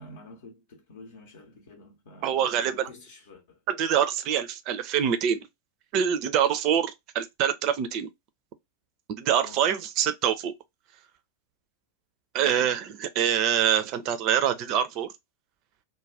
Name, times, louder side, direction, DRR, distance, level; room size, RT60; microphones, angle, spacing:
voice 1, 0.0-3.6 9.4-9.7 12.4-12.7, left 1 dB, 55° left, 0.7 m, -49 dB
voice 2, 2.2-2.9 3.7-5.5 5.9-8.1 9.1-10.5 12.3-15.1, right 9 dB, 40° right, 0.4 m, -25 dB
2.4 x 2.1 x 3.2 m
figure-of-eight pair, 90°, 0 cm